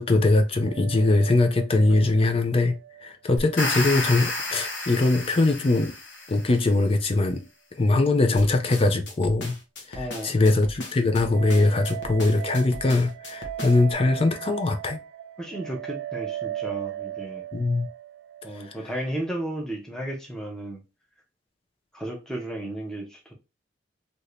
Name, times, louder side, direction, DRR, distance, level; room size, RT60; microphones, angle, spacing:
voice 1, 0.0-5.9 6.3-7.4 7.8-9.6 9.9-15.0 17.5-17.9, left 2 dB, 30° left, 0.5 m, -22 dB
sound 1, 0.6-3.8 4.0-4.1 11.3-19.2, right 12 dB, 65° right, 0.3 m, -38 dB
sound 2, 3.4-6.6, left 2 dB, 85° left, 1.3 m, -31 dB
sound 3, 8.4-13.9, left 1 dB, 65° left, 0.8 m, -39 dB
voice 2, 9.9-10.4 15.4-17.4 18.4-20.8 21.9-23.3, right 1 dB, 5° left, 0.8 m, -34 dB
2.8 x 2.6 x 3.2 m
head